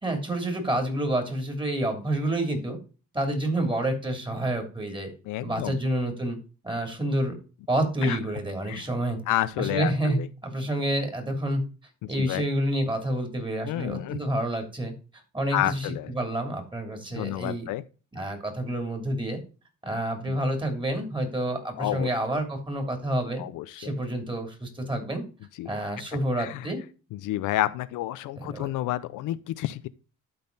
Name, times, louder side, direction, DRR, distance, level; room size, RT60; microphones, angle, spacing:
voice 1, 0.0-2.8 3.1-5.1 5.4-6.4 6.6-7.3 7.7-9.2 9.6-11.6 12.1-14.9 15.3-17.7 18.1-19.4 19.8-23.4 23.8-25.2 25.6-26.8 28.4-28.7, right 1 dB, 15° right, 2.9 m, -28 dB
voice 2, 5.3-5.8 8.0-8.2 8.7-8.8 9.3-10.3 12.2-12.4 13.6-14.2 15.5-16.1 17.1-17.8 20.3-20.4 21.8-22.1 23.4-23.9 25.6-25.7 26.4-26.7 27.1-29.9, left 15 dB, 85° left, 0.6 m, -30 dB
12.0 x 4.2 x 3.9 m
cardioid pair, 90°, 30 cm